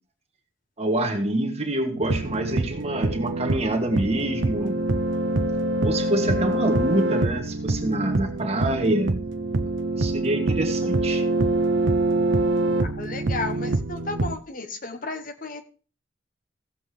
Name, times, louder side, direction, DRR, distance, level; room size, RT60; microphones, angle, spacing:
voice 1, 0.8-4.8 5.8-9.2 10.0-11.2, right 1 dB, 30° right, 1.6 m, -26 dB
sound 1, 2.0-14.4, right 2 dB, 75° right, 0.7 m, -25 dB
voice 2, 12.8-15.6, left 3 dB, 45° left, 1.1 m, -33 dB
16.0 x 7.6 x 3.3 m
head